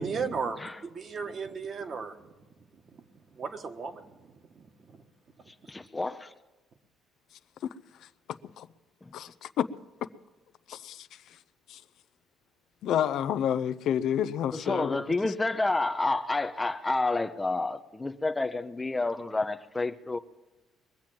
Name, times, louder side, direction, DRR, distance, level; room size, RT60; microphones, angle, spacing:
voice 1, 0.0-2.3 2.9-3.0 3.3-5.0, right 5 dB, 40° right, 1.3 m, -36 dB
voice 2, 5.5-6.3 9.1-9.2 14.5-20.2, left 2 dB, 15° left, 0.6 m, -29 dB
voice 3, 9.1-9.7 10.7-11.4 11.7-11.8 12.8-15.3, left 9 dB, 65° left, 0.5 m, -30 dB
21.5 x 7.5 x 7.6 m
cardioid pair, 125°, 0 cm